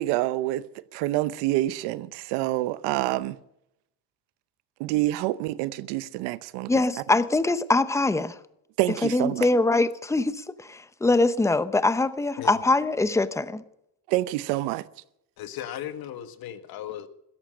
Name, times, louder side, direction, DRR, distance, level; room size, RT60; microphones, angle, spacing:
voice 1, 0.0-3.4 4.8-6.7 8.8-9.5 14.1-14.9, right 16 dB, 90° right, 0.8 m, -27 dB
voice 2, 6.7-8.4 9.0-13.6, left 2 dB, 5° left, 0.7 m, -23 dB
voice 3, 15.4-17.1, left 11 dB, 60° left, 1.6 m, -36 dB
16.5 x 13.5 x 6.4 m
cardioid pair, 115°, 40 cm